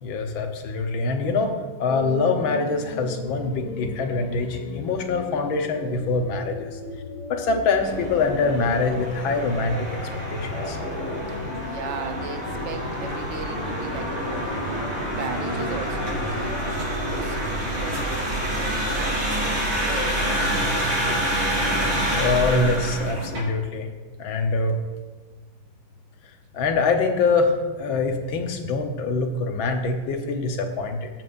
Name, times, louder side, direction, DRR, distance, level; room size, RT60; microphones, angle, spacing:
voice 1, 0.0-6.8 7.3-10.0 10.3-10.8 22.1-23.9 24.2-24.8 26.5-31.1, left 3 dB, 70° left, 4 dB, 1.8 m, -24 dB
sound 1, 1.9-16.9, left 4 dB, 85° left, 1.8 m, -37 dB
sound 2, 7.8-23.4, equal, 90° right, 5.1 m, -27 dB
voice 2, 11.3-14.6 14.9-16.7 16.9-20.6, right 5 dB, 60° right, 4 dB, 0.7 m, -38 dB
20.5 x 7.7 x 2.6 m, 1.3 s
omnidirectional pair, 2.3 m